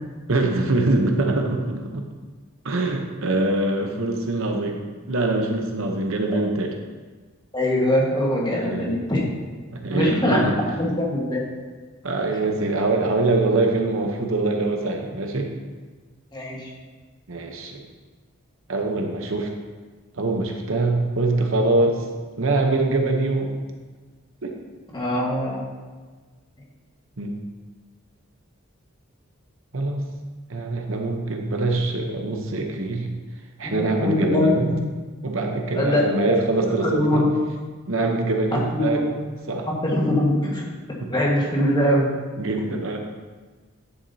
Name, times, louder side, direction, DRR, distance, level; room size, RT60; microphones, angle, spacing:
voice 1, 0.3-2.0 2.6-4.8 5.1-6.7 8.5-8.9 9.7-10.6 12.0-15.5 17.3-17.8 18.7-19.5 20.2-22.0 22.4-23.5 24.4-24.6 27.2-27.3 29.7-30.0 30.5-33.1 33.6-34.7 35.2-37.3 37.9-39.0 39.5-39.7 41.0-41.1 42.4-43.0, right 2 dB, 65° right, 3 dB, 0.9 m, -23 dB
voice 2, 7.5-9.2 9.9-10.4 10.7-11.4 16.3-16.7 24.9-25.6 33.6-34.8 35.8-36.3 36.8-37.2 38.7-39.0 39.8-40.6 41.1-42.1, left 1 dB, 20° left, -3 dB, 1.5 m, -22 dB
11.0 x 7.1 x 2.8 m, 1.4 s
head